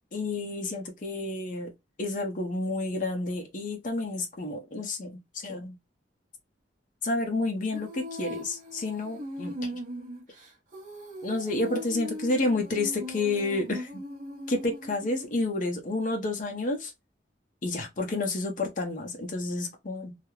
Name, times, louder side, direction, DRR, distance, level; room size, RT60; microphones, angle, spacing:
voice 1, 0.1-1.7 2.0-5.8 7.0-9.8 11.2-14.0 14.5-16.9 17.6-20.2, left 2 dB, 45° left, 0.6 m, -30 dB
Female singing, 7.7-15.4, equal, 45° right, 0.7 m, -39 dB
2.3 x 2.0 x 3.0 m
head